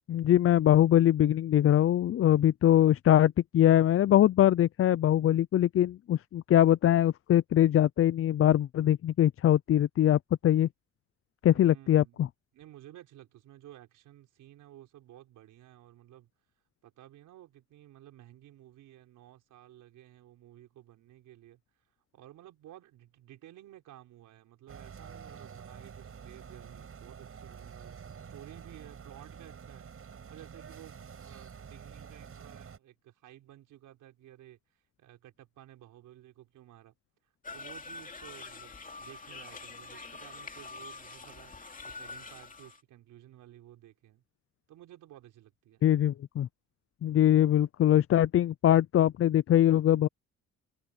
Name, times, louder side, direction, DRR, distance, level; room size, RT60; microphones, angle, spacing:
voice 1, 0.1-10.7 11.4-12.3 45.8-46.5 47.0-50.1, left 11 dB, 50° left, 0.5 m, -23 dB
voice 2, 11.5-12.2 12.5-16.3 16.8-21.6 22.1-28.0 28.3-36.9 37.5-41.5 41.8-44.2 44.7-45.8, right 13 dB, 85° right, 4.9 m, -54 dB
sound 1, 24.7-32.8, right 7 dB, 45° right, 7.0 m, -48 dB
sound 2, 37.4-42.8, left 3 dB, 25° left, 2.6 m, -45 dB
cardioid pair, 90°, 30 cm